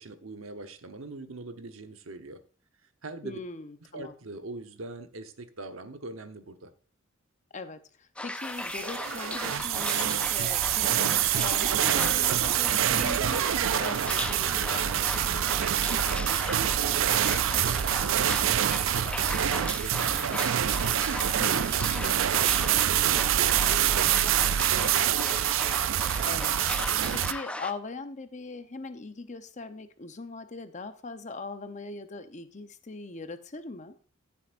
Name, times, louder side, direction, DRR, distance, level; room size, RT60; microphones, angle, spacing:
voice 1, 0.0-2.4 3.0-3.4 3.9-6.7 15.9-20.9 21.7-25.6, right 2 dB, 85° right, 8 dB, 1.0 m, -42 dB
voice 2, 3.2-4.1 7.5-15.2 21.4-21.7 26.2-26.7 27.1-33.9, left 3 dB, 35° left, 9 dB, 0.8 m, -40 dB
sound 1, 8.2-27.7, left 1 dB, 5° left, 0.4 m, -37 dB
sound 2, 8.6-27.3, right 11 dB, 70° right, 0.4 m, -26 dB
sound 3, 12.3-21.3, right 1 dB, 30° right, 2.8 m, -44 dB
14.0 x 7.1 x 2.5 m, 0.41 s
head